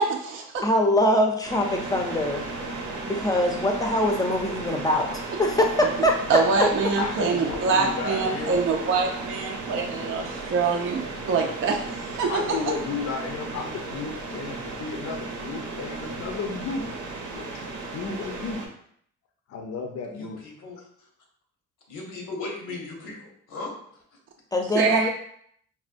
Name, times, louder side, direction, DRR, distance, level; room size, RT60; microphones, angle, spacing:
voice 1, 0.0-0.6 6.3-10.2 10.5-11.8 12.2-12.4 24.7-25.1, right 4 dB, 45° right, 1 dB, 0.4 m, -24 dB
voice 2, 0.6-2.4 3.1-6.7 24.5-25.1, left 1 dB, 10° left, 2 dB, 0.6 m, -23 dB
sound 1, 1.4-18.7, right 3 dB, 90° right, 0.8 m, -35 dB
voice 3, 7.0-8.6 12.3-16.9 17.3-18.6 19.5-20.4, left 5 dB, 55° left, 3 dB, 0.6 m, -33 dB
voice 4, 20.2-21.1 21.9-23.7, left 3 dB, 85° left, 0 dB, 0.9 m, -37 dB
4.2 x 2.1 x 2.5 m, 0.66 s
cardioid pair, 90°, 30 cm